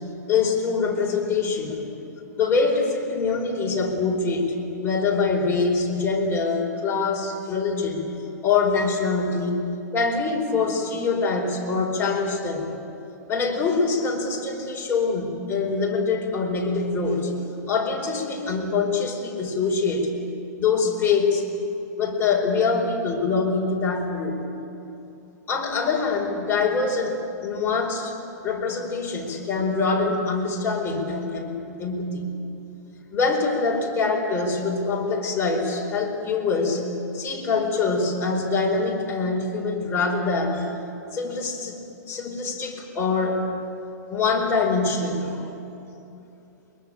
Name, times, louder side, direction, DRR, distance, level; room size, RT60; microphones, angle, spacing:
voice 1, 0.3-1.8 2.4-4.5 4.8-8.1 8.4-12.7 13.3-17.3 17.7-20.1 20.6-21.4 22.0-24.4 25.5-28.1 28.4-32.3 33.1-36.9 37.1-40.7 41.1-41.8 42.1-43.5 44.1-45.5, left 4 dB, 20° left, 0 dB, 4.6 m, -24 dB
23.5 x 22.0 x 9.0 m, 2.8 s
hypercardioid pair, 135°, 10 cm